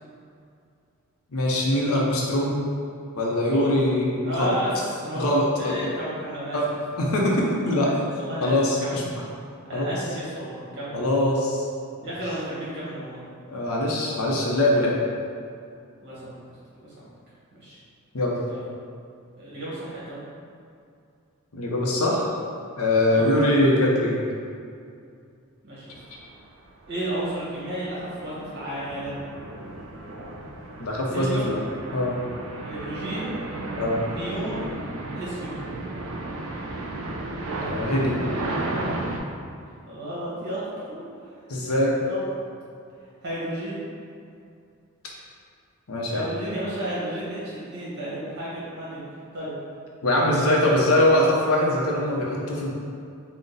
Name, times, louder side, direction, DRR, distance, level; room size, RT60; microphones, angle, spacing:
voice 1, 1.3-2.6 3.2-4.6 5.2-5.9 6.5-6.7 7.0-8.0 8.4-9.2 9.7-9.9 10.9-11.7 12.0-12.1 13.5-14.9 18.1-18.4 21.5-22.3 22.8-24.2 30.8-31.6 31.9-32.2 33.8-34.0 37.6-38.2 41.5-41.9 45.9-46.3 50.0-52.7, left 1 dB, 85° left, -3 dB, 0.7 m, -22 dB
voice 2, 3.4-3.8 4.2-5.3 5.6-6.6 7.5-8.5 8.8-9.0 9.6-11.0 12.0-13.2 16.0-16.3 16.7-17.0 17.6-17.8 18.5-18.6 19.4-20.2 23.0-23.3 25.6-26.0 26.9-29.3 31.1-31.5 32.6-33.4 34.1-34.7 35.1-35.6 39.9-41.4 42.0-42.3 43.2-43.8 46.1-49.0 49.3-49.5 50.3-51.0, right 1 dB, 55° right, -8 dB, 1.3 m, -32 dB
sound 1, 26.2-26.4 26.9-39.2, right 2 dB, 70° right, 0.4 m, -34 dB
3.8 x 2.1 x 3.8 m, 2.4 s
head